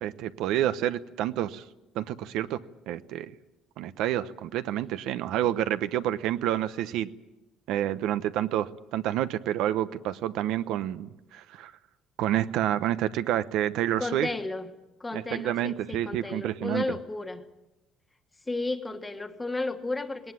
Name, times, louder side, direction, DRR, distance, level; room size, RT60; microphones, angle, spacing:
voice 1, 0.0-1.6 1.9-2.6 2.9-3.3 3.8-7.1 7.7-11.7 12.2-14.3 15.1-16.8, right 12 dB, 70° right, 13 dB, 0.9 m, -28 dB
voice 2, 14.0-14.7 15.0-17.4 18.5-20.3, left 2 dB, 10° left, 7 dB, 1.4 m, -33 dB
20.0 x 19.0 x 9.7 m, 0.98 s
cardioid pair, 165°, 0 cm